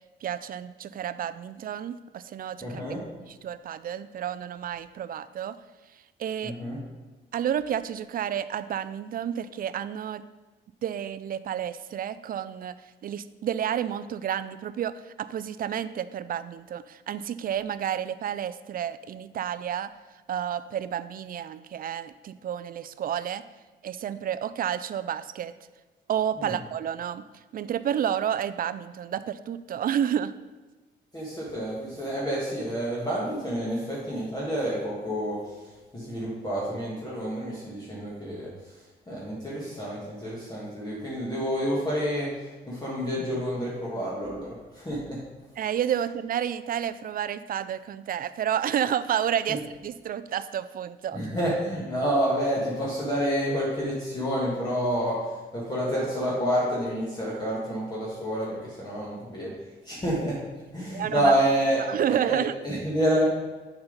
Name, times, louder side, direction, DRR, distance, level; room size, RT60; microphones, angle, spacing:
voice 1, 0.2-2.8 3.2-5.6 6.2-6.5 7.3-10.2 10.8-12.7 13.0-19.9 20.3-23.4 23.8-25.5 26.1-27.2 27.5-30.3 45.6-51.2 60.9-61.3 61.8-62.5, right 9 dB, 45° right, 14 dB, 0.4 m, -30 dB
voice 2, 2.6-3.0 6.4-6.8 26.4-26.6 31.1-38.8 39.1-45.2 51.1-59.6 59.8-60.4 60.7-61.8 62.1-63.3, equal, 20° left, -6 dB, 1.7 m, -29 dB
7.0 x 5.3 x 4.0 m, 1.2 s
cardioid pair, 90°, 20 cm